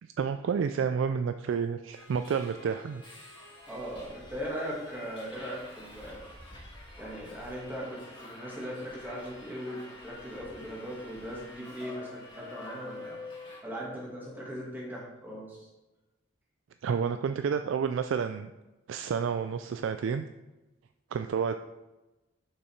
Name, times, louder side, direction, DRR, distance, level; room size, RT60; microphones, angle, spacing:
voice 1, 0.2-3.0 16.8-18.5 18.9-20.2 21.1-21.6, right 6 dB, 70° right, 9 dB, 0.3 m, -30 dB
Subway metro underground, 1.9-13.6, left 2 dB, 30° left, 2.4 m, -48 dB
voice 2, 3.7-6.2 7.0-13.1 13.6-15.7, equal, 10° right, -4 dB, 2.0 m, -39 dB
6.8 x 5.5 x 4.4 m, 1.1 s
head